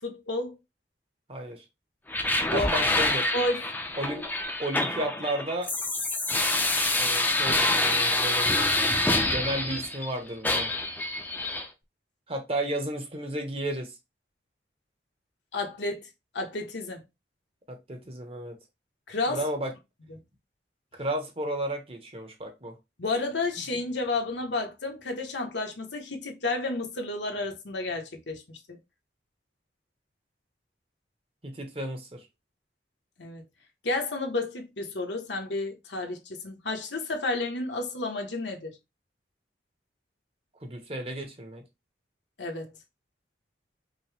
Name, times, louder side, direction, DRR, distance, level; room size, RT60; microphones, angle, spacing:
voice 1, 0.0-0.5 2.4-2.7 3.3-3.6 15.5-16.1 16.3-17.0 19.1-19.4 23.0-28.6 33.2-33.4 33.8-38.8 42.4-42.7, left 2 dB, 80° left, 1.0 m, -31 dB
voice 2, 1.3-1.6 2.5-3.3 4.0-4.3 4.6-5.7 7.0-8.7 9.3-10.7 12.3-13.9 17.7-18.6 19.3-19.7 20.9-22.8 31.4-32.3 40.6-41.6, right 1 dB, 30° right, 0.9 m, -33 dB
sound 1, 2.1-10.1 10.4-11.7, left 2 dB, 10° left, 0.5 m, -26 dB
5.3 x 2.1 x 3.3 m
head